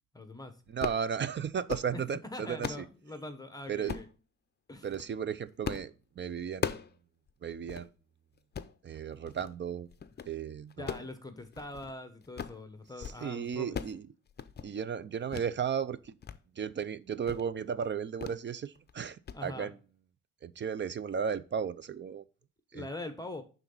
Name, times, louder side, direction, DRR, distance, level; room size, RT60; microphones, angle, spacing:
voice 1, 0.1-0.5 1.9-2.0 2.3-4.1 4.7-4.9 10.8-13.8 19.3-19.7 22.7-23.4, left 2 dB, 10° left, 1.2 m, -43 dB
sound 1, 0.7-1.1 1.5-1.9 2.3-2.9 3.9-4.1 4.8-5.1 5.6-5.9 6.2-7.0 7.3-7.4 7.7-7.9 8.4-8.7 9.3-9.6 9.9-10.3 10.7-11.9 12.2-12.6 12.9-13.2 13.5-14.0 14.3-14.7 15.3-15.5 15.9-16.4 16.7-16.8 17.2-17.5 18.2-18.4 18.7-18.9 19.3-19.4, left 7 dB, 35° left, 0.7 m, -39 dB
voice 2, 0.7-2.8 3.7-4.0 4.8-6.7 7.4-7.9 8.8-9.9 10.3-11.0 13.0-14.1 14.6-16.1 16.6-19.7 20.4-22.2 22.7-22.9, right 7 dB, 40° right, 0.6 m, -35 dB
10.5 x 4.0 x 3.9 m
cardioid pair, 90°, 30 cm